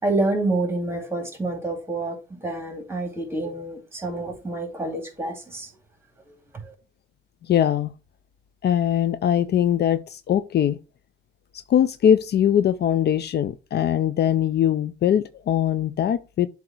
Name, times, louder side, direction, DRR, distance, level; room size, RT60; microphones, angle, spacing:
voice 1, 0.0-5.7 6.6-6.7, right 2 dB, 10° right, 2.5 m, -28 dB
voice 2, 7.5-7.9 8.6-10.8 11.7-16.5, left 10 dB, 55° left, 0.5 m, -21 dB
7.7 x 2.9 x 6.0 m
cardioid pair, 90°, 20 cm